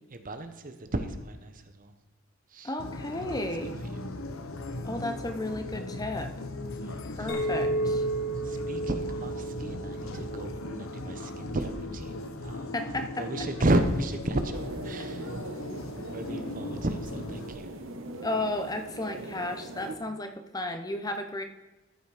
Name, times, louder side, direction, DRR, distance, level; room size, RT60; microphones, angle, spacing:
voice 1, 0.1-1.9 2.5-2.7 3.2-3.5 4.6-4.8 6.8-7.3 8.4-12.7 13.2-15.3 15.9-17.7, right 1 dB, 40° right, 8 dB, 0.9 m, -33 dB
voice 2, 2.6-3.7 4.8-6.3 7.0-8.1 12.7-13.5 18.2-21.4, left 2 dB, 20° left, 7 dB, 0.7 m, -33 dB
sound 1, 2.8-17.5, left 2 dB, 80° left, 0.9 m, -38 dB
Chink clink, 7.3-11.8, right 2 dB, 50° left, 2.5 m, -33 dB
sound 2, 14.5-20.0, right 2 dB, 70° right, 1.3 m, -41 dB
13.5 x 6.0 x 4.9 m, 1.1 s
head